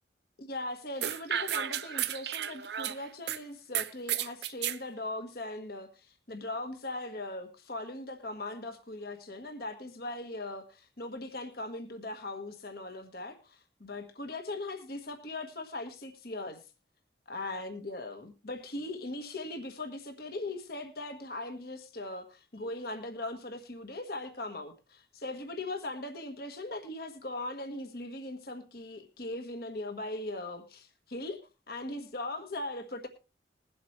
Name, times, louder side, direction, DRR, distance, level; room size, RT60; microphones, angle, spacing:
voice 1, 0.4-16.6 17.3-31.4 31.7-33.1, left 2 dB, 55° left, 6 dB, 1.5 m, -39 dB
sound 1, 1.0-3.4 3.7-4.8, right 10 dB, 65° right, 0.6 m, -33 dB
21.0 x 8.0 x 3.2 m, 0.30 s
head